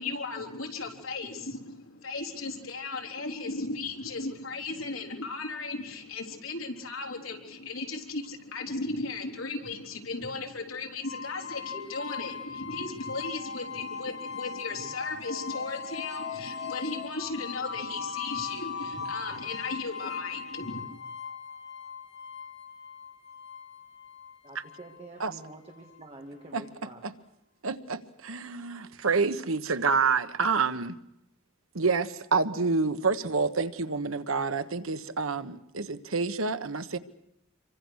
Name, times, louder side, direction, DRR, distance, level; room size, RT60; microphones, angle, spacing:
voice 1, 0.0-21.0, left 3 dB, 75° left, 3 dB, 3.6 m, -36 dB
sound 1, 11.0-26.0, left 6 dB, 60° left, 3.2 m, -39 dB
voice 2, 24.4-27.0, right 2 dB, 30° right, 2 dB, 2.4 m, -47 dB
voice 3, 27.6-31.0 31.7-37.0, right 4 dB, 85° right, 11 dB, 1.3 m, -28 dB
27.5 x 24.0 x 6.5 m, 0.79 s
head